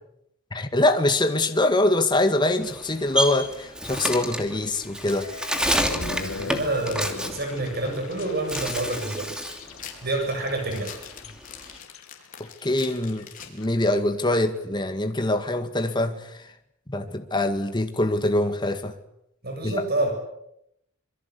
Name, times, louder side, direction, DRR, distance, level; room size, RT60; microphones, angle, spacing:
voice 1, 0.5-5.3 12.4-13.3 13.5-16.4 16.9-18.9 19.6-19.8, left 1 dB, 20° left, 2.0 m, -24 dB
sound 1, 2.4-2.8 3.1-3.5 3.9-4.0 4.8-13.9, left 3 dB, 85° left, 2.4 m, -40 dB
Bird, 2.6-8.1 8.4-9.7 10.0-11.8, equal, 5° right, 2.8 m, -29 dB
sound 2, 5.1-7.1 7.4-7.5 7.9-14.0, left 8 dB, 40° left, 4.9 m, -44 dB
voice 2, 6.5-9.3 10.0-11.0 19.4-20.1, right 2 dB, 50° right, 7.8 m, -27 dB
27.0 x 23.0 x 8.4 m
head